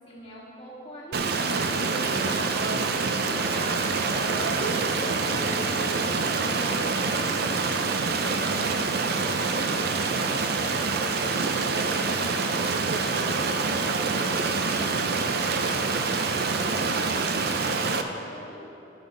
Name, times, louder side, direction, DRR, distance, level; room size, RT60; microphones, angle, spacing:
voice 1, 0.0-14.3 14.5-18.7, equal, 30° left, -6 dB, 2.4 m, -43 dB
Stream, 1.1-18.0, right 4 dB, 60° right, 0.6 m, -26 dB
sound 1, 4.5-17.9, right 1 dB, 5° left, 1.1 m, -44 dB
14.0 x 7.0 x 3.9 m, 2.9 s
head